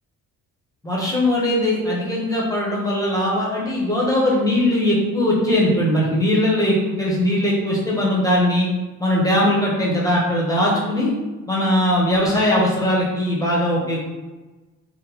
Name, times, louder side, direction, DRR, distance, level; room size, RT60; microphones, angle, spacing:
voice 1, 0.8-8.7 9.0-11.1 11.5-14.0, left 1 dB, 10° left, -5 dB, 0.8 m, -20 dB
3.5 x 2.1 x 2.9 m, 1.2 s
cardioid pair, 115°, 34 cm